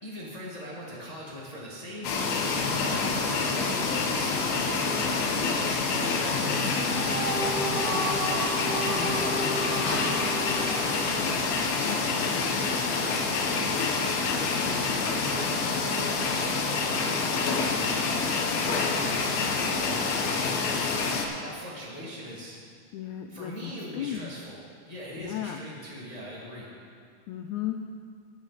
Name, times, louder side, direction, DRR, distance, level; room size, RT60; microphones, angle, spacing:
voice 1, 0.0-2.6 2.9-5.3 5.8-11.4 11.9-17.0 18.0-22.6 23.3-24.6 24.9-26.7, equal, 35° left, -6 dB, 0.6 m, -41 dB
sound 1, 2.0-21.3, left 4 dB, 65° left, 1.9 m, -27 dB
sound 2, 6.8-12.0, right 2 dB, 85° right, 4.8 m, -33 dB
voice 2, 8.9-9.4 11.6-12.0 22.9-24.3 25.2-25.6 27.3-27.8, left 11 dB, 85° left, 5 dB, 1.7 m, -35 dB
21.0 x 7.3 x 4.0 m, 2.2 s
omnidirectional pair, 3.9 m